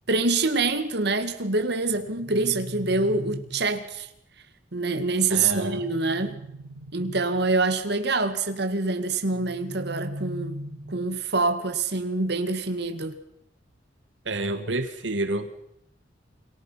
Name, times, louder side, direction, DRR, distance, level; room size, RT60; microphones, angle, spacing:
voice 1, 0.1-4.1 4.7-6.3 6.9-10.6 10.9-13.2, right 3 dB, 60° right, 2.1 m, -25 dB
sound 1, 1.9-3.9 5.6-7.6 9.3-11.3, equal, 40° right, 4.2 m, -39 dB
voice 2, 5.3-5.8 14.3-15.5, right 2 dB, 85° right, 1.8 m, -28 dB
30.0 x 23.5 x 5.8 m
head